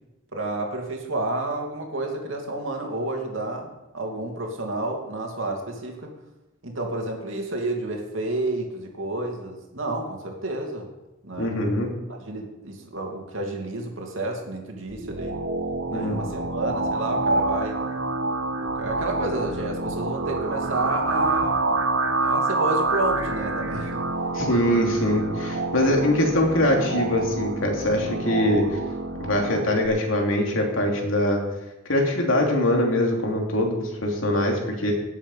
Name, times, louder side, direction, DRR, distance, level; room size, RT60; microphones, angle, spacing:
voice 1, 0.3-6.1 6.6-10.9 11.2-11.5 12.1-15.4 15.9-17.8 18.6-21.7 22.2-24.0 24.7-24.8, right 2 dB, 75° right, 1 dB, 2.6 m, -30 dB
voice 2, 11.4-11.9 15.9-16.2 24.3-28.7 29.2-31.4 31.9-34.9, left 1 dB, 85° left, 1 dB, 2.9 m, -23 dB
sound 1, 14.9-29.9, right 2 dB, 90° right, 1.5 m, -27 dB
17.5 x 7.4 x 5.5 m, 0.99 s
head